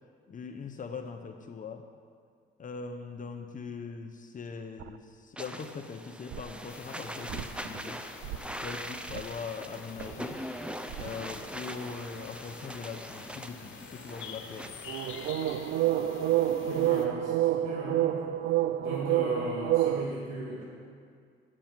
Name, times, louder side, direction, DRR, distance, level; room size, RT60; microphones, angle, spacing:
voice 1, 0.3-1.8 2.6-8.0 8.6-10.4 10.9-14.7, left 5 dB, 40° left, 4 dB, 0.8 m, -41 dB
sound 1, 4.8-4.9 6.3-6.4 7.3-7.8 8.2-8.7 9.1-9.3 10.0-10.1 10.9-11.2 14.9-20.0, right 13 dB, 75° right, 0.5 m, -28 dB
sound 2, 5.4-15.3, equal, 5° right, 0.7 m, -42 dB
sound 3, 6.7-17.1, left 6 dB, 80° left, 1.3 m, -48 dB
voice 2, 16.4-18.3 18.8-20.6, right 1 dB, 90° right, -6 dB, 2.7 m, -37 dB
9.0 x 7.5 x 9.0 m, 2.1 s
cardioid pair, 90°, 20 cm